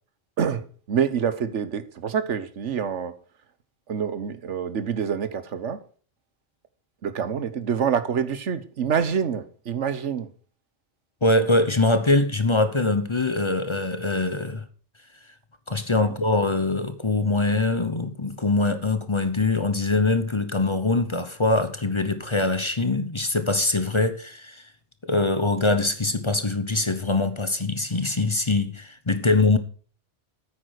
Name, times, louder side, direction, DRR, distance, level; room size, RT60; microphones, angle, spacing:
voice 1, 0.4-3.1 3.9-5.8 7.0-10.3 16.0-16.1, right 7 dB, 85° right, 1.4 m, -26 dB
voice 2, 11.2-14.6 15.7-24.6 25.1-29.6, left 2 dB, 25° left, 0.9 m, -23 dB
9.4 x 8.5 x 6.5 m
omnidirectional pair, 1.2 m